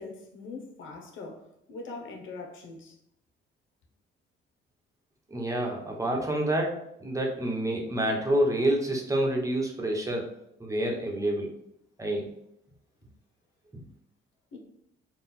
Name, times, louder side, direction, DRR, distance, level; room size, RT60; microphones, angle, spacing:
voice 1, 0.0-3.0 14.5-14.6, left 3 dB, 75° left, 1.0 m, -42 dB
voice 2, 5.3-10.3 10.6-11.5 12.0-12.3, right 1 dB, 15° right, 1.1 m, -28 dB
4.1 x 2.4 x 4.3 m
cardioid pair, 90°, 20 cm